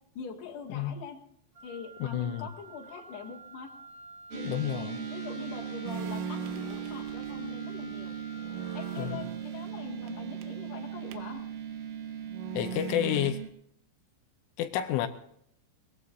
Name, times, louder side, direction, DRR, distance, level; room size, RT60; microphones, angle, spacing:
voice 1, 0.2-1.2 1.6-3.7 4.3-4.5 4.8-8.2 8.7-11.4, left 6 dB, 60° left, 3.7 m, -43 dB
Wind instrument woodwind instrument, 1.5-9.3, equal, 30° right, 4.6 m, -50 dB
voice 2, 2.1-2.5 4.4-5.0 9.0-9.2 12.5-13.4 14.6-15.1, left 11 dB, 80° left, 3.1 m, -30 dB
sound 1, 4.3-13.5, right 9 dB, 65° right, 4.1 m, -39 dB
sound 2, 5.8-7.5 7.9-8.0 8.3-11.4 12.2-13.3, right 6 dB, 85° right, 3.4 m, -40 dB
22.5 x 21.0 x 2.6 m
omnidirectional pair, 5.9 m